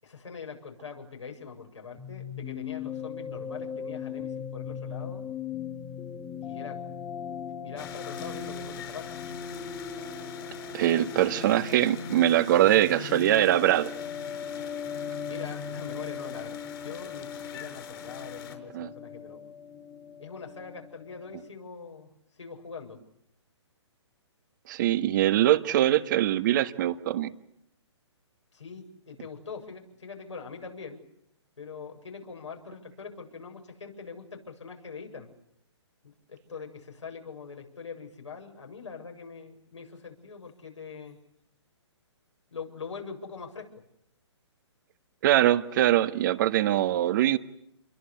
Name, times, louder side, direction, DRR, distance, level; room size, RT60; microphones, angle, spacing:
voice 1, 0.0-5.3 6.4-6.8 7.6-9.1 15.2-19.4 20.2-22.1 22.4-23.0 28.5-31.0 31.6-35.3 36.0-41.2 42.5-43.7, left 5 dB, 80° left, 2 dB, 7.6 m, -43 dB
sound 1, 2.0-21.5, left 7 dB, 15° left, 1.7 m, -39 dB
sound 2, 7.8-18.6, left 9 dB, 50° left, 5.5 m, -45 dB
voice 2, 10.7-13.9 18.7-18.9 24.7-27.3 45.2-47.4, right 13 dB, 40° right, 11 dB, 1.5 m, -23 dB
28.5 x 22.5 x 8.5 m, 0.75 s
figure-of-eight pair, 135°, 15 cm